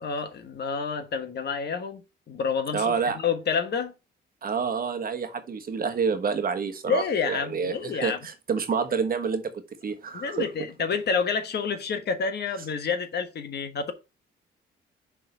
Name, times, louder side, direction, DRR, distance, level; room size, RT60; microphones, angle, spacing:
voice 1, 0.0-2.0 2.3-3.9 6.9-8.2 10.1-13.9, left 5 dB, 55° left, 1.3 m, -28 dB
voice 2, 2.7-3.2 4.4-10.5, right 5 dB, 45° right, 1.3 m, -28 dB
6.6 x 3.7 x 5.4 m
cardioid pair, 90°, 20 cm